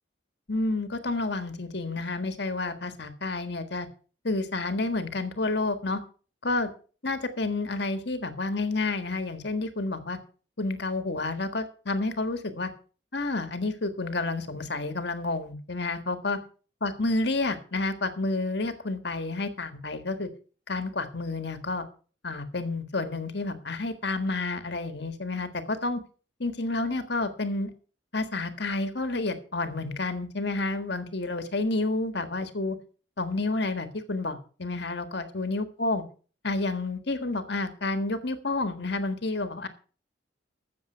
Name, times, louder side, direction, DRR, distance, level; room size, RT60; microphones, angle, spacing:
voice 1, 0.5-3.9 4.2-6.0 6.4-6.7 7.0-10.2 10.6-12.7 13.1-16.4 16.8-20.3 20.7-21.9 22.2-26.0 26.4-27.7 28.1-32.8 33.2-36.0 36.4-39.7, left 2 dB, 60° left, 9 dB, 1.6 m, -30 dB
14.0 x 7.3 x 5.6 m, 0.40 s
head